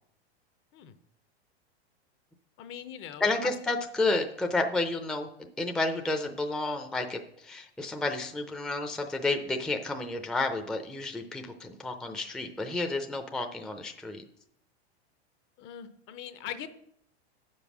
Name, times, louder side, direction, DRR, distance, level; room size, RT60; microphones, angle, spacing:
voice 1, 2.6-3.5 15.6-16.7, left 10 dB, 35° left, 11 dB, 0.7 m, -41 dB
voice 2, 3.2-14.2, left 2 dB, ahead, 4 dB, 0.5 m, -31 dB
7.9 x 5.4 x 6.1 m, 0.73 s
hypercardioid pair, 115°, 33 cm